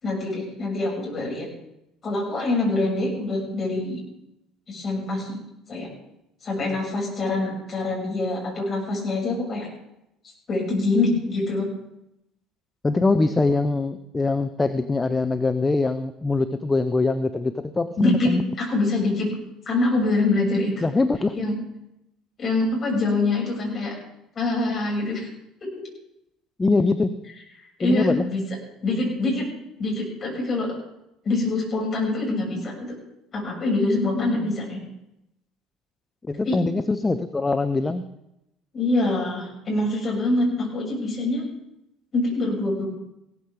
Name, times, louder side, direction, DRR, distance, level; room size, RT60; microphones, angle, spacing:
voice 1, 0.0-1.5 2.0-4.0 4.7-5.4 5.7-5.9 6.4-9.7 10.5-11.7 18.0-19.3 19.7-20.8 21.4-21.5 22.4-23.9 24.4-25.3 25.6-25.7 27.8-28.4 28.8-29.5 29.8-30.7 31.2-32.7 33.3-34.8 36.4-36.6 38.7-41.5 42.1-42.8, left 2 dB, 35° left, -2 dB, 7.2 m, -24 dB
voice 2, 12.8-18.5 20.8-21.4 26.6-27.1 27.8-28.3 36.3-38.0, left 3 dB, 20° left, 10 dB, 0.7 m, -23 dB
17.0 x 14.0 x 3.7 m, 0.83 s
figure-of-eight pair, 60°, 0 cm